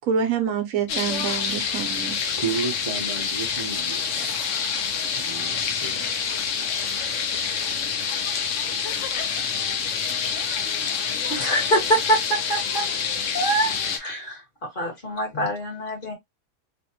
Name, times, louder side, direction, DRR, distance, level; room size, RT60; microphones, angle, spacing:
voice 1, 0.1-2.2, right 7 dB, 70° right, 1.1 m, -26 dB
sound 1, 0.9-14.0, left 6 dB, 65° left, 0.9 m, -27 dB
voice 2, 2.3-4.4 5.1-6.1, right 5 dB, 30° right, 0.7 m, -32 dB
voice 3, 11.3-12.9 13.3-16.1, right 1 dB, 35° left, 1.8 m, -25 dB
3.3 x 2.5 x 2.8 m
omnidirectional pair, 1.5 m